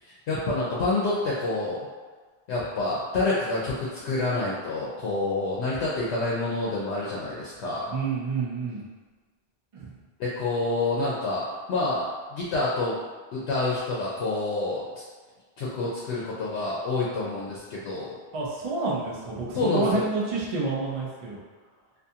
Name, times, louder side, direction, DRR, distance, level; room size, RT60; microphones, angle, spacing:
voice 1, 0.0-1.8 2.5-7.9 10.2-11.4 11.7-13.0 13.3-14.9 15.6-18.2 19.5-20.0, left 2 dB, 80° left, -6 dB, 0.8 m, -28 dB
voice 2, 7.9-8.8 9.7-9.9 18.3-21.4, right 3 dB, 40° right, -5 dB, 0.5 m, -29 dB
2.5 x 2.3 x 2.7 m, 1.4 s
omnidirectional pair, 1.1 m